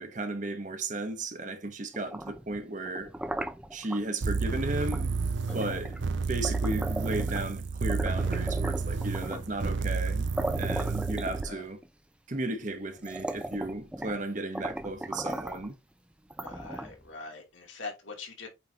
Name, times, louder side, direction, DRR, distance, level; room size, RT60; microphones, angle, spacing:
voice 1, 0.0-3.1 3.7-5.2 5.5-6.0 6.3-10.3 10.6-11.8 12.3-15.8, right 2 dB, 40° right, 1.0 m, -34 dB
sound 1, 1.9-4.0 4.9-5.1 5.5-7.6 7.9-9.5 10.1-10.2 10.4-11.9 12.5-12.6 13.0-14.2 14.5-15.7 16.3-17.1, right 1 dB, 5° right, 0.4 m, -37 dB
sound 2, 4.2-11.5, right 4 dB, 70° right, 0.6 m, -31 dB
voice 2, 5.5-5.8 11.4-11.6 16.4-18.5, left 4 dB, 75° left, 2.6 m, -43 dB
8.7 x 3.9 x 2.8 m
head